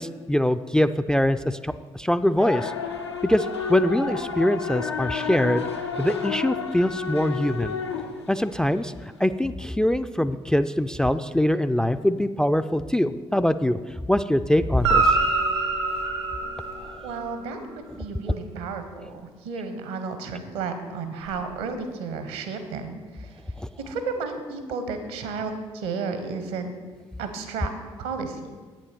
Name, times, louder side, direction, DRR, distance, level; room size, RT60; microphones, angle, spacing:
voice 1, 0.0-2.7 3.2-5.7 6.0-7.8 8.3-8.9 9.2-15.2 23.6-23.7, left 1 dB, 5° left, 12 dB, 0.3 m, -23 dB
sound 1, 2.4-9.0, left 6 dB, 85° left, 0.6 m, -31 dB
Guitar, 14.8-17.4 21.2-21.3, right 3 dB, 90° right, 1.6 m, -24 dB
voice 2, 17.0-17.6 17.9-23.3 23.9-26.7 27.2-27.7 28.0-28.5, right 4 dB, 70° right, 8 dB, 1.0 m, -32 dB
8.4 x 7.7 x 5.1 m, 1.4 s
figure-of-eight pair, 40°, 14 cm